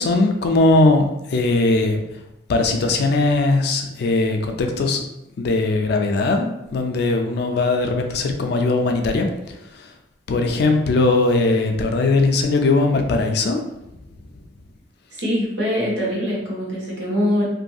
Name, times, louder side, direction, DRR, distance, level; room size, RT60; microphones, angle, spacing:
voice 1, 0.0-2.0 2.5-5.0 5.4-9.3 9.8-9.9 10.3-13.6, left 2 dB, 65° left, 4 dB, 0.4 m, -19 dB
voice 2, 15.1-17.4, equal, 75° right, -5 dB, 1.0 m, -23 dB
2.6 x 2.5 x 2.3 m, 0.87 s
head